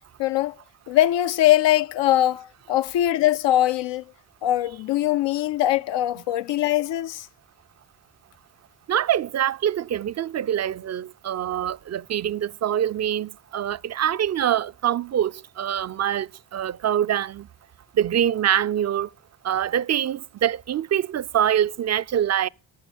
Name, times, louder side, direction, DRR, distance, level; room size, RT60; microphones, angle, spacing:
voice 1, 0.2-0.6 0.9-4.0 4.4-7.3, left 13 dB, 70° left, 0.5 m, -21 dB
voice 2, 8.9-17.5 18.0-19.1 19.4-22.5, right 10 dB, 35° right, 0.4 m, -24 dB
12.0 x 6.7 x 7.2 m
supercardioid pair, 50°, 46 cm